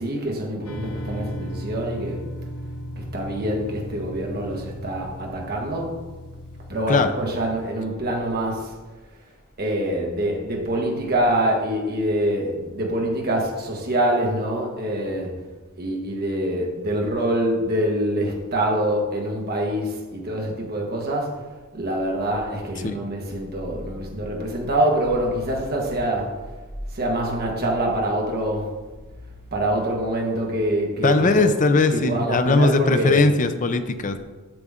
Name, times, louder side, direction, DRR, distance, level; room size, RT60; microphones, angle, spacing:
voice 1, 0.0-2.2 3.0-6.0 6.7-8.7 9.6-15.3 15.8-21.4 21.7-26.3 26.9-28.7 29.5-31.5 31.9-33.2, right 1 dB, 45° right, 0 dB, 1.6 m, -25 dB
sound 1, 0.6-7.7, equal, 80° left, 0.9 m, -36 dB
voice 2, 31.0-34.2, left 3 dB, 35° left, 9 dB, 0.5 m, -19 dB
7.8 x 7.3 x 3.7 m, 1.3 s
head